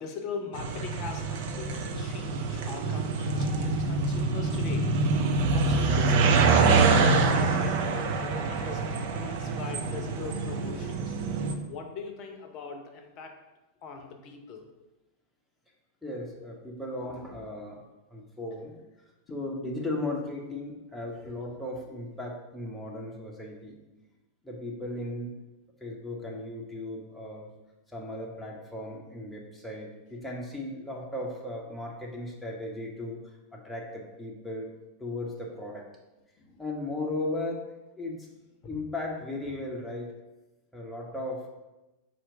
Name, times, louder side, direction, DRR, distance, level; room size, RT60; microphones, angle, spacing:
voice 1, 0.0-4.9 5.5-11.2 11.7-13.4 13.8-14.7 19.3-19.4 36.4-36.6 38.6-38.7, left 5 dB, 40° left, 4 dB, 0.7 m, -41 dB
sound 1, 0.5-11.5, right 4 dB, 50° right, 0.4 m, -25 dB
voice 2, 16.0-17.8 18.1-18.7 19.3-23.7 24.4-25.3 25.8-27.5 27.9-33.2 33.5-34.7 35.0-35.9 36.6-37.6 38.0-38.3 38.7-40.1 40.7-41.5, left 2 dB, 5° left, -3 dB, 0.8 m, -36 dB
4.4 x 2.5 x 4.8 m, 1.0 s
figure-of-eight pair, 90°, 0 cm